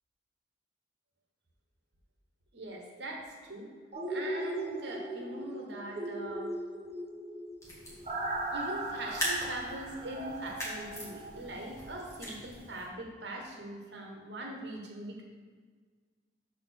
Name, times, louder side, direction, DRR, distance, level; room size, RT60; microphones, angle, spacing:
voice 1, 2.5-3.7 4.1-6.5 8.5-15.2, right 1 dB, 80° right, 0 dB, 1.2 m, -41 dB
sound 1, 3.9-11.8 12.2-12.3, right 1 dB, 35° right, 1.0 m, -38 dB
sound 2, 7.6-12.9, equal, 15° left, 1.8 m, -40 dB
6.9 x 4.3 x 5.8 m, 1.5 s
head